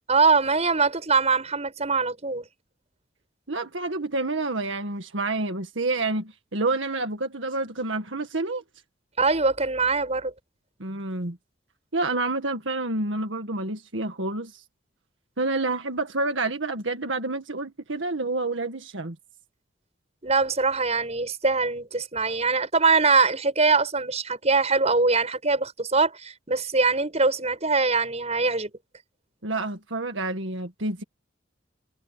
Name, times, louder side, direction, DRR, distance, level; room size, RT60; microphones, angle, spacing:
voice 1, 0.1-2.5 9.2-10.3 20.2-28.7, right 4 dB, 35° right, 7.2 m, -23 dB
voice 2, 3.5-8.6 10.8-11.4 11.9-14.6 15.4-19.2 29.4-31.0, right 2 dB, 85° right, 1.8 m, -28 dB
head